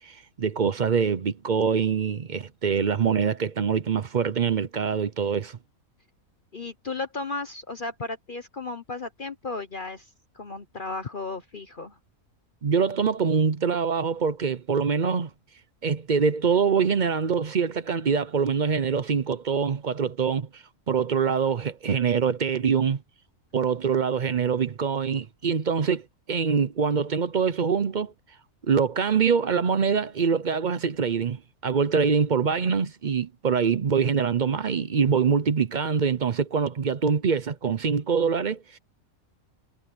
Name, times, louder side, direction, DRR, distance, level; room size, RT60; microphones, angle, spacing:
voice 1, 0.0-5.6 12.6-15.3 15.8-23.0 23.5-28.1 28.7-38.8, right 6 dB, 45° right, 0.6 m, -24 dB
voice 2, 6.5-10.1 10.3-12.0, left 3 dB, 40° left, 1.1 m, -34 dB
omnidirectional pair, 1.5 m